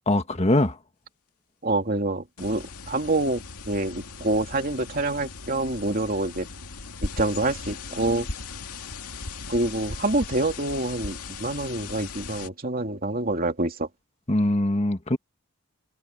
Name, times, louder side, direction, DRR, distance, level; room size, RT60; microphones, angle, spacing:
voice 1, 0.1-0.8 14.3-15.2, left 1 dB, 30° left, 1.6 m, -22 dB
voice 2, 1.6-3.4 3.7-6.5 7.0-8.3 9.5-13.9, right 2 dB, 40° right, 2.8 m, -26 dB
sound 1, 2.4-12.5, left 3 dB, 85° left, 2.2 m, -38 dB
head